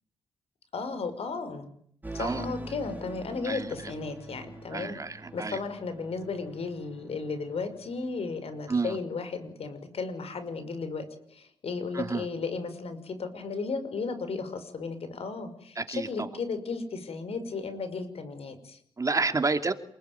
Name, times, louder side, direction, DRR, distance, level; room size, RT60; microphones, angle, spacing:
voice 1, 0.7-1.7 2.1-5.0 5.3-18.8, left 4 dB, 70° left, 11 dB, 5.9 m, -34 dB
sound 1, 2.0-8.8, right 2 dB, 15° right, 4.2 m, -45 dB
voice 2, 3.4-3.9 4.7-5.6 8.7-9.0 11.9-12.3 15.8-16.3 19.0-19.7, right 3 dB, 30° right, 8 dB, 2.9 m, -30 dB
28.5 x 20.5 x 9.7 m, 0.66 s
cardioid pair, 80°, 11 cm